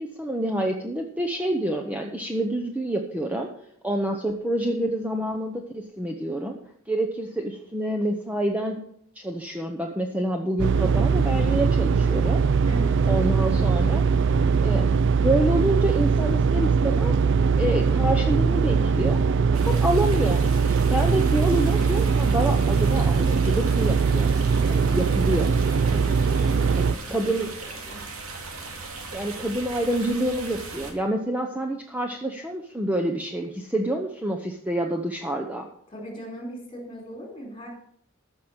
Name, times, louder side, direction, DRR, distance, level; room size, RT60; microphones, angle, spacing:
voice 1, 0.0-3.5 3.8-6.6 6.9-8.8 9.2-12.4 13.1-14.0 14.6-14.9 15.2-17.2 17.6-19.2 19.6-20.4 20.9-24.3 24.7-25.5 26.8-27.5 29.1-35.7, right 1 dB, 5° right, 3 dB, 0.9 m, -27 dB
sound 1, 10.6-26.9, right 5 dB, 55° right, 0.4 m, -21 dB
voice 2, 12.6-13.1 25.9-27.3 27.9-28.0 35.9-37.7, equal, 25° left, 1 dB, 4.2 m, -40 dB
sound 2, 19.5-30.9, right 3 dB, 75° right, 2.5 m, -38 dB
14.0 x 6.2 x 7.3 m, 0.68 s
head